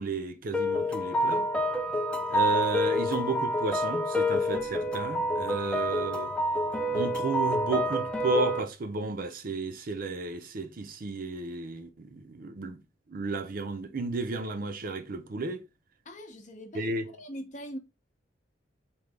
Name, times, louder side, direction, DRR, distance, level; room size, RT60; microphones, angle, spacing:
voice 1, 0.0-1.5 2.3-6.3 6.9-12.8 13.1-15.6 16.7-17.1, right 3 dB, 50° right, 0.5 m, -33 dB
sound 1, 0.5-8.6, equal, 5° left, 0.4 m, -28 dB
voice 2, 16.1-17.8, equal, 40° left, 0.6 m, -42 dB
3.8 x 2.7 x 3.3 m
head